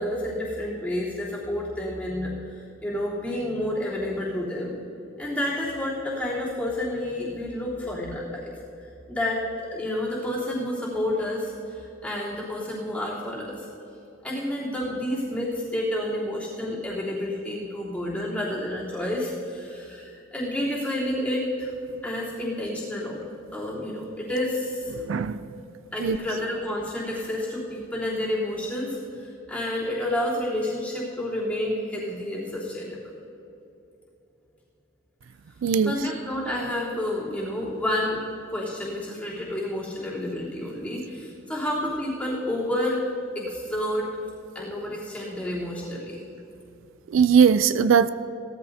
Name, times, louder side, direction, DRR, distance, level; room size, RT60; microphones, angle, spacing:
voice 1, 0.0-4.7 5.2-8.5 9.1-13.7 14.2-21.7 22.0-23.2 23.5-24.9 25.9-33.0 35.8-38.2 38.5-43.0 43.3-44.1 44.5-46.2, left 1 dB, 5° left, -9 dB, 3.4 m, -30 dB
voice 2, 24.9-25.5 26.0-26.2 35.6-36.1 47.1-48.1, right 6 dB, 80° right, 13 dB, 0.4 m, -20 dB
18.0 x 13.5 x 2.8 m, 2.8 s
head